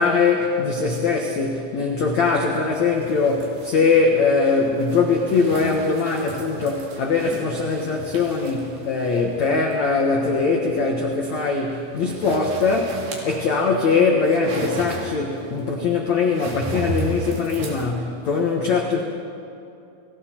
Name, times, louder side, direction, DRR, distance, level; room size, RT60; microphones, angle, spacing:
voice 1, 0.0-19.0, left 4 dB, 80° left, 1 dB, 1.6 m, -21 dB
sound 1, 2.5-17.9, right 2 dB, 60° right, 4.1 m, -36 dB
30.0 x 19.5 x 4.5 m, 2.7 s
omnidirectional pair, 5.6 m